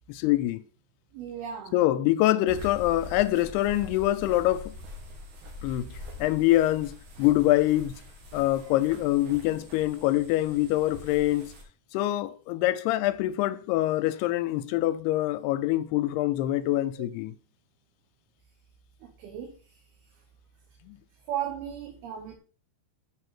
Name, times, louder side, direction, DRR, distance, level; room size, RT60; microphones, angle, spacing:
voice 1, 0.1-0.6 1.7-4.7 5.6-5.9 6.2-7.9 8.3-11.5 11.9-17.3 20.8-21.0, left 15 dB, 85° left, 2.5 m, -25 dB
voice 2, 1.1-1.8 19.0-19.5 21.3-22.4, right 9 dB, 75° right, 3.0 m, -35 dB
sound 1, 2.5-11.6, left 2 dB, 55° right, 2.8 m, -44 dB
7.9 x 5.2 x 6.0 m
omnidirectional pair, 4.7 m